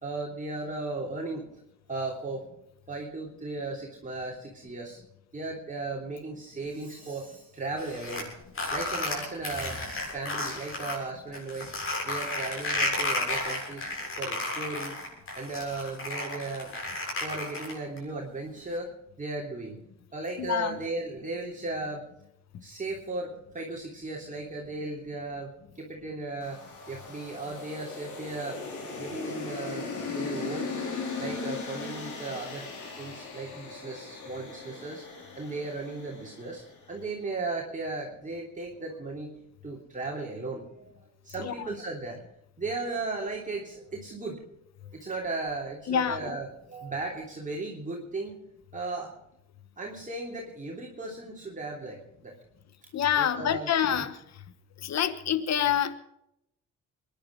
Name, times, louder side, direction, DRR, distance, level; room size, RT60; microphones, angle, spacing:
voice 1, 0.0-1.5 1.9-2.4 2.9-5.0 5.3-8.3 8.7-9.8 10.1-11.7 12.0-13.9 14.2-15.0 15.3-16.9 17.2-18.9 19.2-19.8 20.1-22.1 22.6-28.6 29.0-29.8 30.1-30.7 31.2-32.7 33.0-35.0 35.4-36.6 36.9-39.3 39.6-40.9 41.2-42.2 42.6-44.4 44.9-48.4 48.7-49.1 49.8-52.3 53.1-54.1, right 3 dB, 25° right, -2 dB, 3.2 m, -36 dB
sound 1, 7.8-11.0 11.3-18.0, left 2 dB, 45° left, 7.6 m, -32 dB
voice 2, 20.4-20.8 41.4-41.5 45.9-46.2 52.9-54.2 54.8-56.0, left 9 dB, 60° left, 13 dB, 1.3 m, -26 dB
sound 2, 26.4-36.8, left 4 dB, 80° left, 4.8 m, -38 dB
23.0 x 11.0 x 5.3 m, 0.81 s
cardioid pair, 90°, 30 cm